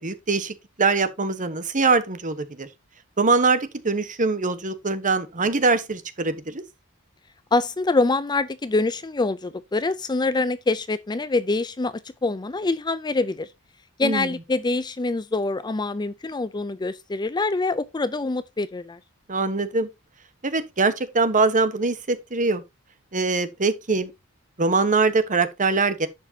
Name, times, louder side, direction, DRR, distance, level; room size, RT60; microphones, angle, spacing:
voice 1, 0.0-2.7 3.2-6.6 14.0-14.3 19.3-19.9 20.4-22.6 23.1-24.1 24.6-26.1, right 3 dB, 35° right, 1.2 m, -23 dB
voice 2, 7.5-13.5 14.0-19.0, left 3 dB, 20° left, 0.4 m, -25 dB
10.5 x 7.5 x 2.8 m
head